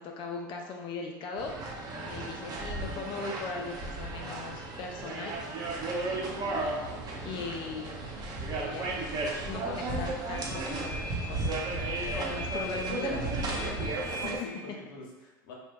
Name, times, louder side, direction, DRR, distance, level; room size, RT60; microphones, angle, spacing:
voice 1, 0.0-5.4 6.5-8.0 8.6-9.0 9.4-11.5 12.1-13.8 14.2-14.8, left 4 dB, 45° left, 1 dB, 0.4 m, -39 dB
sound 1, 1.4-14.4, right 2 dB, 35° right, 0.8 m, -34 dB
voice 2, 14.1-15.5, left 2 dB, 75° left, -2 dB, 0.8 m, -47 dB
3.0 x 2.2 x 3.4 m, 1.1 s
hypercardioid pair, 90°, 11 cm